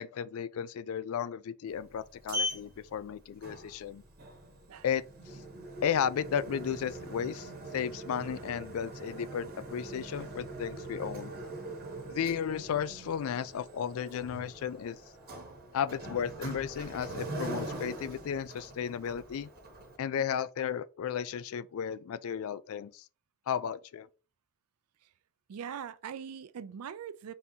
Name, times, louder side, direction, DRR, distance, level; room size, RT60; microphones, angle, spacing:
voice 1, 0.0-4.0 4.8-5.4 5.8-11.3 12.1-15.0 15.7-19.5 20.0-23.0 23.5-24.1, left 8 dB, 70° left, 0.3 m, -34 dB
Sliding door, 1.7-20.0, right 1 dB, 45° right, 1.1 m, -42 dB
voice 2, 25.5-27.3, right 7 dB, 80° right, 0.4 m, -41 dB
4.2 x 3.6 x 2.7 m
head